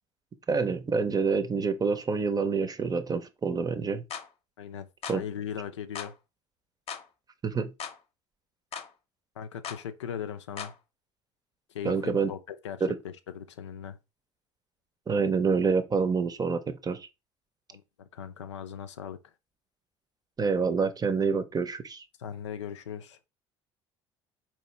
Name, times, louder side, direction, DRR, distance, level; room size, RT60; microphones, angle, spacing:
voice 1, 0.5-4.0 5.1-5.2 7.4-7.7 11.8-12.3 12.8-13.0 15.1-17.1 20.4-22.0, right 5 dB, 25° right, 0.7 m, -27 dB
sound 1, 4.1-4.3 5.0-5.2 5.9-6.1 6.9-7.1 7.8-8.0 8.7-8.9 9.6-9.8 10.6-10.8, left 7 dB, 40° left, 0.8 m, -38 dB
voice 2, 4.6-6.1 9.4-10.7 11.7-14.0 17.7-19.2 22.2-23.2, left 8 dB, 80° left, 0.5 m, -39 dB
4.3 x 3.1 x 3.1 m
figure-of-eight pair, 60°, 15 cm